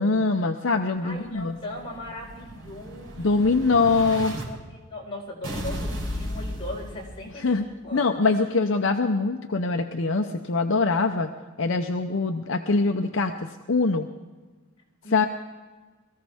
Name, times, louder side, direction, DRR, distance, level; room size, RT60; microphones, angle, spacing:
voice 1, 0.0-1.6 3.2-4.4 7.4-7.6 7.9-11.3 11.6-14.1 15.1-15.3, left 3 dB, 65° left, 5 dB, 0.7 m, -23 dB
voice 2, 1.0-3.7 4.2-4.6 4.9-8.2 15.0-15.2, left 1 dB, 25° left, -4 dB, 4.5 m, -39 dB
Explosion, 1.1-4.4 5.4-7.5, equal, 80° right, 4.2 m, -35 dB
22.0 x 14.5 x 3.6 m, 1.3 s
head